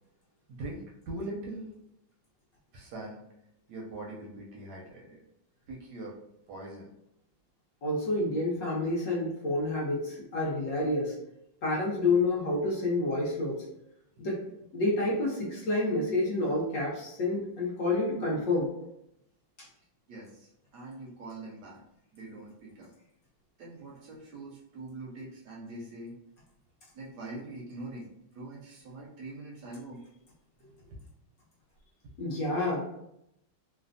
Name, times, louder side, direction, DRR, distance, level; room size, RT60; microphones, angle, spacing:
voice 1, 0.5-1.6 2.7-3.2 3.7-5.2 5.7-6.1 6.5-6.9 20.1-21.8 22.1-22.9 23.6-26.1 26.9-28.1 28.4-30.0 30.6-31.0, right 2 dB, 70° right, -2 dB, 1.0 m, -42 dB
voice 2, 7.8-11.1 11.6-13.6 14.2-14.4 14.7-18.7 32.2-32.8, left 2 dB, 65° left, -5 dB, 0.9 m, -29 dB
3.2 x 2.1 x 2.5 m, 0.81 s
omnidirectional pair, 2.1 m